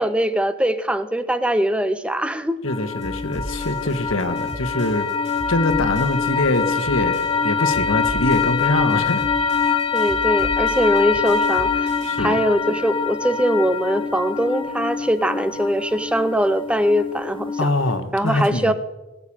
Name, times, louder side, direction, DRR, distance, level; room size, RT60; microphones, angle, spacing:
voice 1, 0.0-2.6 9.9-11.9 12.2-17.7 18.1-18.7, equal, 5° right, 0.6 m, -21 dB
voice 2, 2.6-5.1 5.5-9.3 9.6-9.7 12.0-12.4 17.6-18.7, left 2 dB, 85° left, 1.5 m, -23 dB
sound 1, 2.7-18.0, left 5 dB, 25° left, 0.8 m, -24 dB
sound 2, 3.0-7.4 7.7-12.3, equal, 35° right, 3.8 m, -37 dB
18.5 x 7.0 x 8.7 m
head